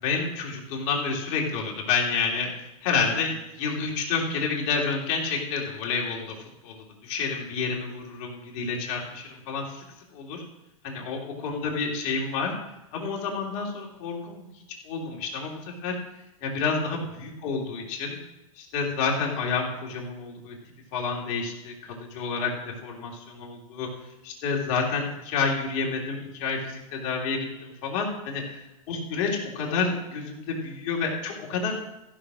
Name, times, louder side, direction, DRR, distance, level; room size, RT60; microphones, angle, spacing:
voice 1, 0.0-6.3 6.6-9.8 10.1-10.4 10.8-12.5 12.9-14.5 14.8-16.0 16.4-18.2 18.5-20.6 20.9-23.9 24.2-28.4 28.9-31.7, left 5 dB, 55° left, -1 dB, 3.1 m, -29 dB
14.5 x 6.4 x 6.2 m, 0.93 s
hypercardioid pair, 125°, 18 cm